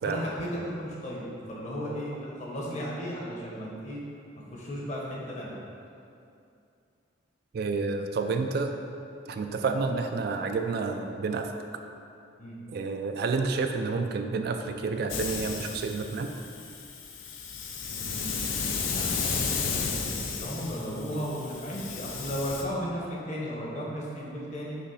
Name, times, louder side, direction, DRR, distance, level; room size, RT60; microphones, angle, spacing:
voice 1, 0.0-4.0 4.4-5.5 12.4-12.6 17.9-24.8, equal, 35° left, -4 dB, 1.1 m, -35 dB
voice 2, 7.5-8.7 9.3-11.5 12.7-16.3 21.1-21.2, right 4 dB, 50° right, 5 dB, 0.3 m, -29 dB
Hiss, 15.1-22.6, left 5 dB, 75° left, 0.6 m, -33 dB
6.1 x 3.1 x 5.7 m, 2.5 s
head